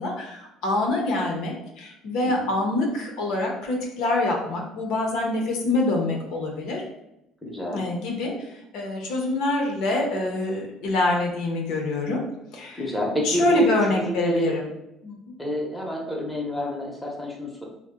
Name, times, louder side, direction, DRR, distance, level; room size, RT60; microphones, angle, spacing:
voice 1, 0.0-6.8 7.7-8.5 8.7-12.2 12.5-12.8 13.2-14.7 15.0-15.3, left 2 dB, 75° left, 1 dB, 0.7 m, -25 dB
voice 2, 7.4-7.8 12.7-14.5 15.4-17.6, right 1 dB, 5° left, -2 dB, 0.8 m, -28 dB
2.7 x 2.1 x 3.6 m, 0.86 s
cardioid pair, 105°, 0 cm